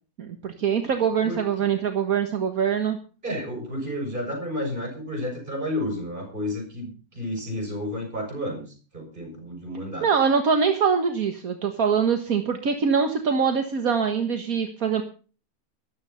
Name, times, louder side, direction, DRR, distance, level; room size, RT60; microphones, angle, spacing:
voice 1, 0.2-3.0 10.0-15.0, right 6 dB, 70° right, 6 dB, 1.9 m, -23 dB
voice 2, 3.2-10.1, left 1 dB, 35° right, 2 dB, 6.9 m, -31 dB
13.5 x 12.5 x 5.7 m, 0.38 s
omnidirectional pair, 1.6 m